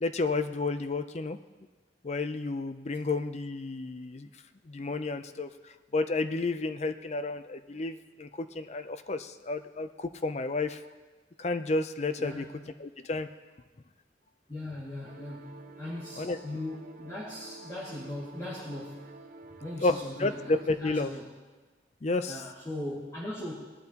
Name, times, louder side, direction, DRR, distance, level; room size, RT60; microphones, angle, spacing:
voice 1, 0.0-1.4 2.0-4.3 4.7-5.5 5.9-10.8 11.4-12.4 12.8-13.3 16.2-16.4 19.8-21.1 22.0-22.4, left 3 dB, 35° left, 10 dB, 0.5 m, -31 dB
voice 2, 12.2-12.6 14.5-19.1 19.5-21.3 22.3-23.5, left 1 dB, 20° left, -9 dB, 2.0 m, -39 dB
sound 1, 15.0-20.8, right 3 dB, 45° right, 0.6 m, -49 dB
19.0 x 12.0 x 2.9 m, 1.3 s
head